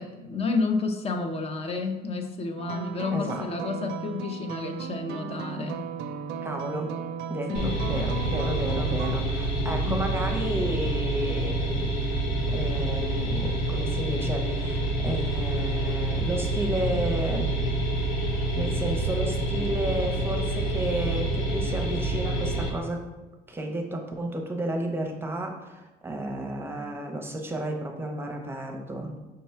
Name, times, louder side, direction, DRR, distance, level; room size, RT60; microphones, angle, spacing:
voice 1, 0.0-5.8 7.5-7.8 9.8-10.1, left 4 dB, 35° left, 6 dB, 0.5 m, -30 dB
sound 1, 2.6-9.2, right 7 dB, 80° right, 0.4 m, -36 dB
voice 2, 3.1-3.5 6.4-6.9 7.3-17.5 18.5-23.1 23.5-29.2, right 1 dB, 15° right, 2 dB, 0.7 m, -32 dB
sound 2, 7.5-22.7, right 1 dB, 90° left, 0.9 m, -27 dB
5.6 x 2.2 x 4.3 m, 1.1 s
cardioid pair, 110°, 17 cm